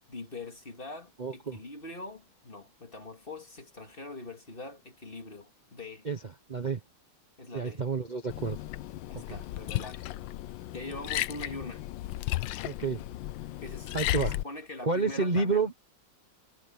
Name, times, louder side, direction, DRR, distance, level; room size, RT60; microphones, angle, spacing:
voice 1, 0.1-6.1 7.4-7.8 9.1-10.0 10.7-11.8 13.6-15.7, left 2 dB, 30° left, 2.4 m, -43 dB
voice 2, 1.2-1.6 6.0-6.2 6.5-6.8 7.5-8.6 9.1-9.4 12.6-13.1 13.9-14.3 14.8-15.7, right 4 dB, 30° right, 1.1 m, -29 dB
Liquid, 8.3-14.4, left 15 dB, 85° left, 1.4 m, -34 dB
omnidirectional pair, 2.0 m